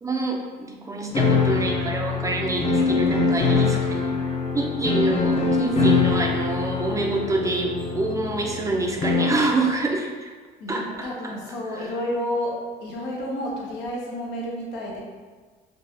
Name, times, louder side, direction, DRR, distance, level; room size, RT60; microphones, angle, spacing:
voice 1, 0.0-4.2 4.5-10.3 10.7-11.3 11.8-11.9, right 2 dB, 20° right, 0 dB, 0.4 m, -27 dB
sound 1, 1.1-9.5, left 4 dB, 35° left, 0.6 m, -23 dB
voice 2, 2.7-3.3 10.6-15.0, equal, 85° left, -2 dB, 0.8 m, -31 dB
4.0 x 2.4 x 2.6 m, 1.4 s
cardioid pair, 110°, 17 cm